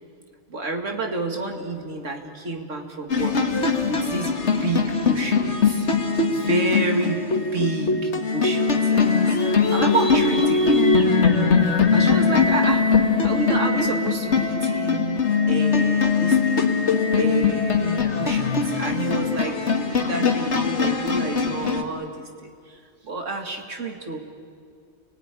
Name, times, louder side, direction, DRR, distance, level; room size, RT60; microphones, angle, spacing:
voice 1, 0.5-4.3 4.6-5.9 6.2-7.2 7.5-10.8 11.9-12.8 13.2-16.7 17.2-24.2, right 2 dB, 75° right, 3 dB, 2.6 m, -29 dB
sound 1, 3.1-21.8, left 5 dB, 60° left, 2.0 m, -21 dB
29.5 x 19.0 x 10.0 m, 2.3 s
omnidirectional pair, 1.3 m